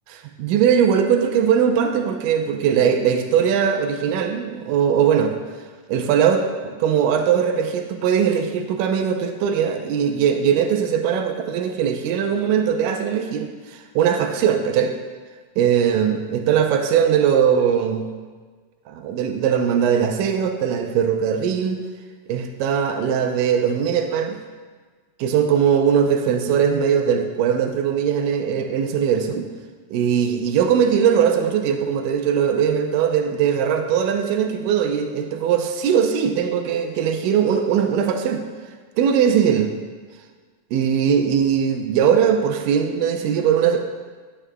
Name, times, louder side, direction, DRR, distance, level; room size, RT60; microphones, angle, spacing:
voice 1, 0.4-5.3 5.9-14.9 15.6-18.1 18.9-21.8 22.3-24.4 25.2-29.4 29.9-38.4 39.0-39.7 40.7-43.8, right 8 dB, 85° right, 5 dB, 2.3 m, -20 dB
14.0 x 8.4 x 2.2 m, 1.5 s
omnidirectional pair, 3.7 m